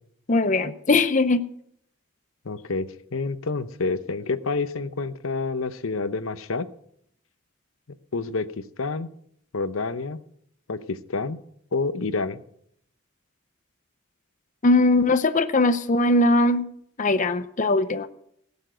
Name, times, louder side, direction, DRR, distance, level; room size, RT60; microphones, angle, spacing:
voice 1, 0.3-1.4 14.6-16.6 17.0-18.1, left 2 dB, 40° left, 10 dB, 0.7 m, -20 dB
voice 2, 2.4-6.7 8.1-8.5 8.8-9.1 9.5-10.2 10.7-11.4 11.7-12.4, left 3 dB, 80° left, 13 dB, 0.8 m, -28 dB
16.5 x 7.2 x 7.8 m, 0.70 s
head